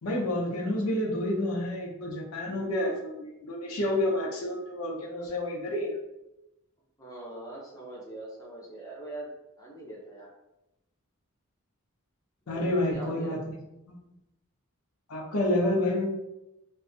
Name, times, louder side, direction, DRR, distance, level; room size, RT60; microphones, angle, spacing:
voice 1, 0.0-6.0 12.5-13.6 13.9-14.0 15.1-16.1, left 1 dB, 85° left, -1 dB, 0.6 m, -29 dB
voice 2, 7.0-9.3 9.6-10.3 12.5-13.3, right 2 dB, 15° left, -4 dB, 0.5 m, -42 dB
2.5 x 2.2 x 2.5 m, 0.92 s
head